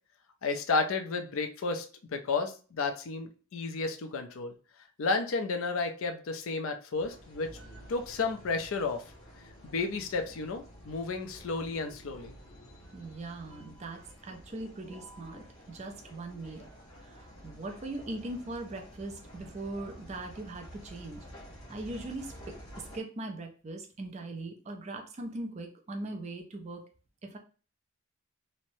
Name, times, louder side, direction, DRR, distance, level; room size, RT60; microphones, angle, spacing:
voice 1, 0.4-4.5 5.0-7.5 7.9-9.0 9.6-12.3, left 4 dB, 70° left, 5 dB, 0.4 m, -32 dB
sound 1, 7.0-23.0, equal, 90° left, 1.1 m, -51 dB
sound 2, 7.4-13.7, equal, 45° left, 0.8 m, -55 dB
voice 2, 12.9-16.7 17.0-21.3 21.7-22.5 22.9-26.8 27.2-27.4, right 2 dB, 30° right, 4 dB, 0.4 m, -40 dB
3.1 x 2.0 x 2.6 m, 0.37 s
head